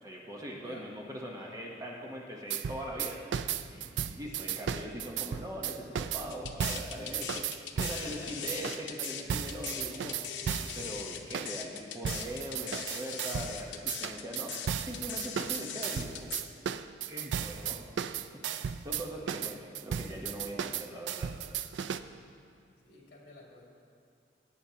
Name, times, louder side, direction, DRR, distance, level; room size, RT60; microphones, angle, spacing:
voice 1, 0.0-3.3 3.7-10.2 10.8-16.4 17.0-17.8 18.5-21.3 21.6-21.7, equal, 20° right, -1 dB, 0.9 m, -41 dB
voice 2, 0.6-0.9 4.5-5.1 7.9-8.5 10.2-11.0 22.8-23.6, left 2 dB, 60° left, -3 dB, 2.3 m, -51 dB
sound 1, 2.5-8.1 8.5-10.8 11.3-11.5 12.0-13.6 13.9-22.0, right 8 dB, 85° right, 0.4 m, -35 dB
sound 2, 6.3-16.4, left 8 dB, 90° left, 0.7 m, -40 dB
17.0 x 8.7 x 2.8 m, 2.3 s
head